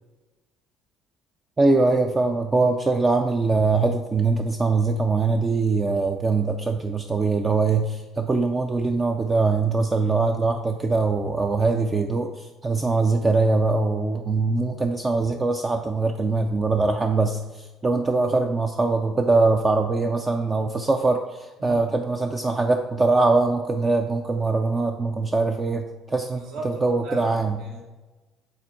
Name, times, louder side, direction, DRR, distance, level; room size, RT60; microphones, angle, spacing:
voice 1, 1.6-27.6, right 3 dB, 20° right, 5 dB, 0.3 m, -22 dB
voice 2, 9.9-10.3 21.6-21.8 26.4-27.3 27.6-27.8, right 1 dB, 75° right, -1 dB, 1.9 m, -38 dB
8.4 x 3.6 x 4.4 m, 1.2 s
cardioid pair, 155°, 0 cm